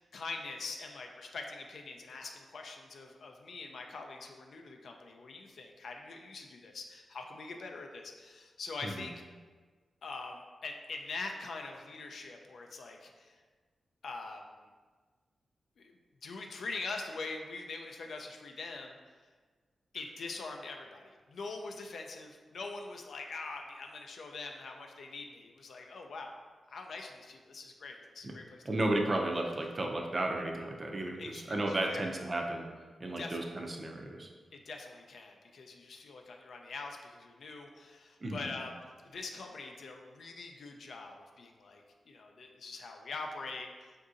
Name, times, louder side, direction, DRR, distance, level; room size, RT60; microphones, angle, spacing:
voice 1, 0.0-9.1 10.0-13.3 14.0-14.4 15.8-15.9 16.2-19.0 19.9-26.3 26.7-28.6 31.2-32.0 33.2-33.5 34.7-43.7, left 3 dB, 75° left, 3 dB, 0.3 m, -43 dB
voice 2, 28.6-32.7 33.0-34.3 38.2-38.5, right 1 dB, 35° right, 1 dB, 0.4 m, -33 dB
3.8 x 2.6 x 2.4 m, 1.5 s
wide cardioid pair, 95°, 0 cm